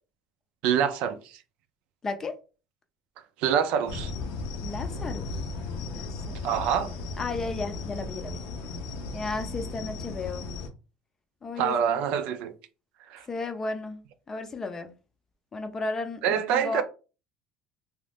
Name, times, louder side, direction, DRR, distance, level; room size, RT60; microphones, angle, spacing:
voice 1, 0.6-1.4 3.4-4.1 6.4-6.9 11.6-12.5 13.1-13.3 16.2-16.8, right 8 dB, 70° right, 0.5 m, -26 dB
voice 2, 2.0-2.4 4.6-5.3 5.9-6.4 7.2-8.4 9.1-10.5 11.4-12.0 13.3-14.9 15.5-16.8, left 3 dB, 25° left, 0.5 m, -34 dB
sound 1, 3.9-10.7, left 3 dB, 75° left, 0.6 m, -35 dB
2.5 x 2.4 x 3.4 m
cardioid pair, 130°, 2 cm